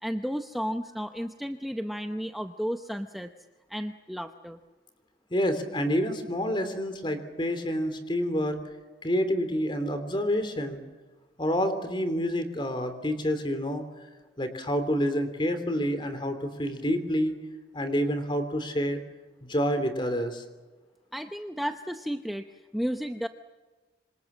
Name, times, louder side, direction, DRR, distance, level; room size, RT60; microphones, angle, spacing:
voice 1, 0.0-3.3 3.7-4.6 21.1-22.5 22.7-23.3, equal, ahead, 6 dB, 0.8 m, -33 dB
voice 2, 5.3-8.6 9.0-10.8 11.4-13.8 14.4-17.4 17.7-19.0 19.4-20.4, equal, 30° left, 9 dB, 3.3 m, -28 dB
26.5 x 26.0 x 7.4 m, 1.2 s
head